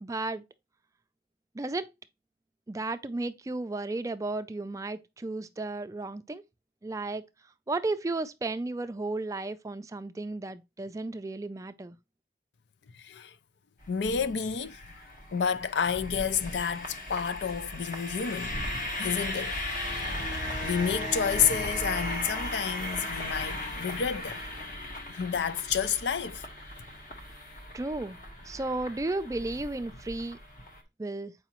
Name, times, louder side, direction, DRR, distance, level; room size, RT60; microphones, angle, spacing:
voice 1, 0.0-0.4 1.5-1.9 2.7-6.4 6.8-7.2 7.7-12.0 27.7-28.2 28.4-30.4 31.0-31.3, right 2 dB, 20° right, 0.3 m, -34 dB
voice 2, 12.9-13.3 13.9-14.8 15.3-18.6 19.0-19.6 20.2-20.3 20.6-24.4 25.1-26.4, left 7 dB, 80° left, 0.4 m, -30 dB
sound 1, 13.8-30.8, left 1 dB, 50° left, 1.3 m, -37 dB
7.0 x 4.8 x 2.9 m
head